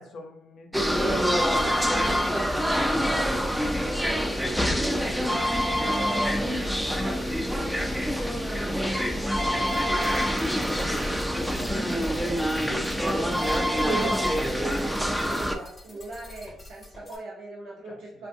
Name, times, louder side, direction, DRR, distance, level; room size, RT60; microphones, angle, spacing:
voice 1, 0.0-4.2 7.3-10.7 11.4-12.3 12.7-13.2 17.9-18.2, left 3 dB, 70° left, 3 dB, 0.6 m, -46 dB
sound 1, 0.7-15.6, equal, ahead, 0.3 m, -25 dB
voice 2, 4.9-7.6 14.4-18.3, right 2 dB, 80° right, -7 dB, 0.7 m, -43 dB
sound 2, 9.7-17.2, left 1 dB, 25° left, 0.7 m, -46 dB
2.8 x 2.3 x 2.6 m, 0.74 s
cardioid pair, 90°, 0 cm